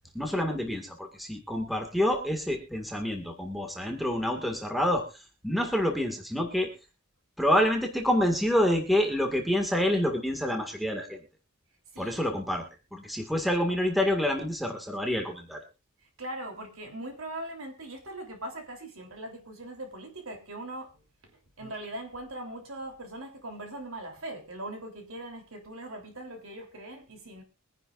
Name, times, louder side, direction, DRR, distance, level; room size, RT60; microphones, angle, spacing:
voice 1, 0.1-5.0 5.4-6.7 7.4-11.2 12.0-12.6 12.9-15.6, left 1 dB, ahead, 1.9 m, -27 dB
voice 2, 16.2-20.9 21.6-27.4, right 1 dB, 65° right, 3.3 m, -40 dB
23.5 x 10.0 x 2.5 m
head